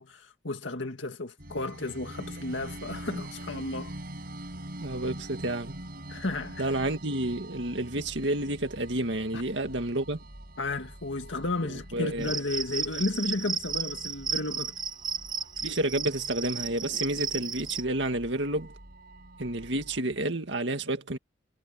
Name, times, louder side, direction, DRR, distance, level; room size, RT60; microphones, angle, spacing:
voice 1, 0.0-3.9 6.1-6.7 9.3-9.4 10.6-14.7, left 2 dB, 80° left, 2.0 m, -33 dB
sound 1, 1.4-20.0, right 1 dB, 55° right, 5.1 m, -45 dB
voice 2, 4.8-5.8 6.6-10.2 11.9-12.3 15.6-18.7 19.4-21.2, right 1 dB, 70° right, 2.1 m, -30 dB
Cricket, 12.2-17.8, right 5 dB, 25° right, 1.0 m, -33 dB
head